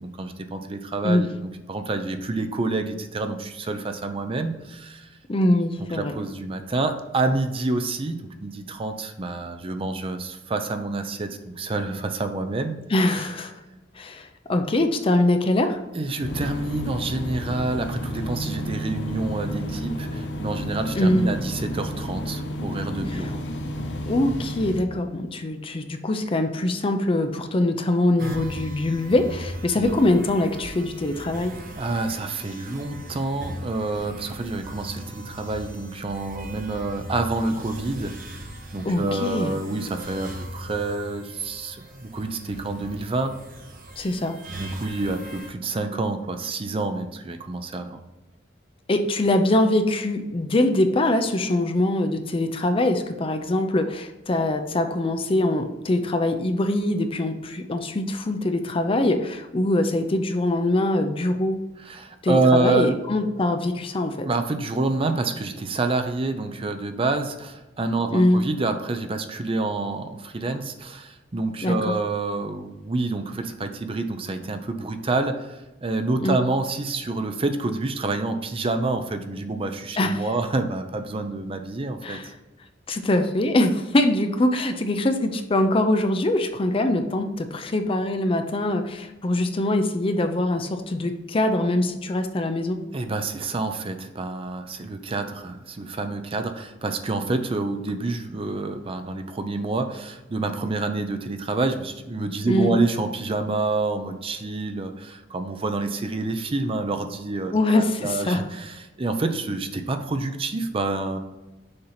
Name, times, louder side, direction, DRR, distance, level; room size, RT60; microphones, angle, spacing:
voice 1, 0.0-5.1 5.9-12.8 15.9-23.4 29.8-29.9 31.8-38.2 38.7-43.3 44.6-48.0 61.8-62.9 64.2-82.2 92.9-111.2, right 2 dB, 30° right, 7 dB, 0.5 m, -28 dB
voice 2, 5.3-6.2 12.9-13.5 14.0-15.8 20.9-21.3 23.0-23.3 24.1-31.5 38.8-39.5 44.0-44.4 48.9-61.6 62.2-64.3 68.1-68.4 71.6-71.9 76.2-76.4 80.0-80.2 82.0-82.3 82.9-92.8 102.5-102.8 107.5-108.4, left 1 dB, 30° left, 6 dB, 0.5 m, -23 dB
sound 1, 16.2-24.8, equal, 70° left, 0.7 m, -31 dB
sound 2, 28.2-45.5, right 1 dB, 50° right, 1.0 m, -39 dB
6.5 x 2.8 x 5.6 m, 1.1 s
head